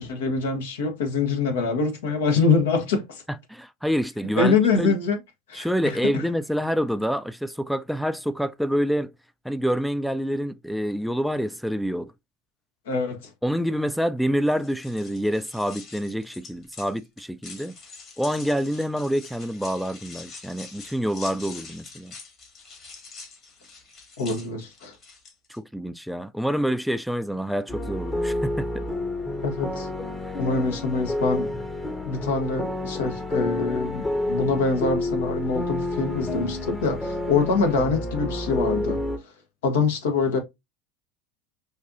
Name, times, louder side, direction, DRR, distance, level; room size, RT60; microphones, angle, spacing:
voice 1, 0.0-3.2 4.4-5.2 5.5-6.2 12.9-13.3 24.2-24.9 29.4-29.9 30.4-31.5 32.0-39.0 39.6-40.4, left 4 dB, 80° left, 1.0 m, -24 dB
voice 2, 3.5-4.9 5.5-9.1 9.4-12.1 13.4-17.8 18.2-22.1 25.5-28.9, equal, ahead, 0.3 m, -27 dB
sound 1, 14.4-25.6, left 4 dB, 45° left, 1.8 m, -45 dB
sound 2, 27.7-39.2, left 1 dB, 20° left, 0.8 m, -29 dB
4.1 x 2.6 x 2.5 m
hypercardioid pair, 80°, 0 cm